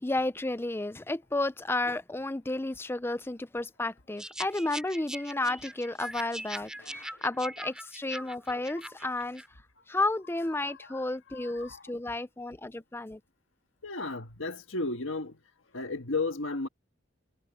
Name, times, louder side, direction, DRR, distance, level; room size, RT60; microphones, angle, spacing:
voice 1, 0.0-9.4 9.9-13.2, left 2 dB, 10° left, 0.5 m, -32 dB
sound 1, 4.2-9.5, right 1 dB, 5° right, 3.3 m, -42 dB
voice 2, 11.3-11.8 13.8-15.3 15.7-16.7, left 3 dB, 85° left, 1.7 m, -34 dB
head